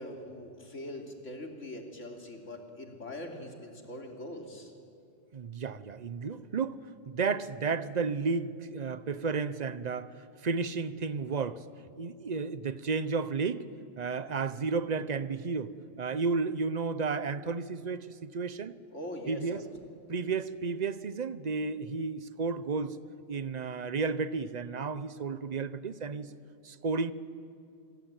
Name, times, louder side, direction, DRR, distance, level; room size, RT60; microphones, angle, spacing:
voice 1, 0.0-4.7 18.9-19.6, left 1 dB, 90° left, 3.5 m, -42 dB
voice 2, 5.3-11.6 12.0-13.7 14.0-18.8 19.3-19.6 20.1-23.0 23.3-26.3 26.6-27.1, right 4 dB, 40° right, 0.9 m, -32 dB
26.5 x 23.5 x 9.1 m
omnidirectional pair, 1.2 m